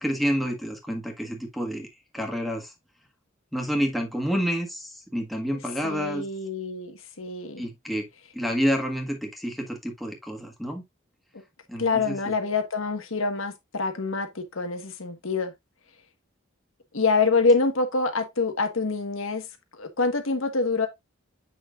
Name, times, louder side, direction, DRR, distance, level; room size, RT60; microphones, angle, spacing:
voice 1, 0.0-1.9 2.1-2.7 3.5-6.2 7.6-8.1 8.3-10.8 11.7-12.2, equal, ahead, 1.5 m, -28 dB
voice 2, 5.8-7.6 11.8-15.5 16.9-19.5 19.7-20.9, left 4 dB, 90° left, 1.4 m, -26 dB
7.8 x 5.9 x 2.4 m
head